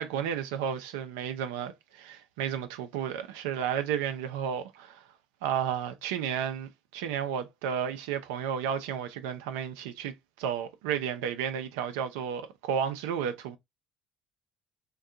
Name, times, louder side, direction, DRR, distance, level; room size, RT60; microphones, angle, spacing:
voice 1, 0.0-5.0 5.4-13.6, right 8 dB, 85° right, 0.4 m, -32 dB
2.6 x 2.3 x 3.5 m
hypercardioid pair, 70°, 0 cm